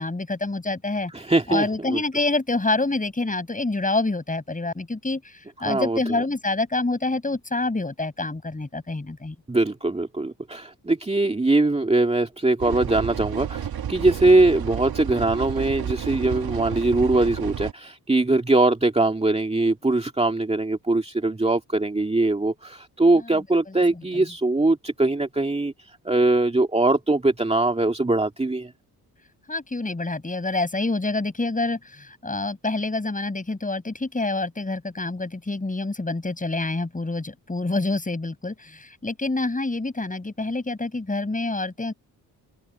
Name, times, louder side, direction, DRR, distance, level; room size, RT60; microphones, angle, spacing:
voice 1, 0.0-1.1 1.5-5.3 5.6-9.3 23.3-23.4 23.7-23.8 29.5-41.9, left 2 dB, 20° left, 8.0 m, -27 dB
voice 2, 1.1-2.0 5.6-6.2 9.5-25.7 26.0-28.7, right 2 dB, 15° right, 2.3 m, -22 dB
sound 1, 12.6-17.7, right 9 dB, 65° right, 2.1 m, -31 dB
open air
cardioid pair, 75°, 39 cm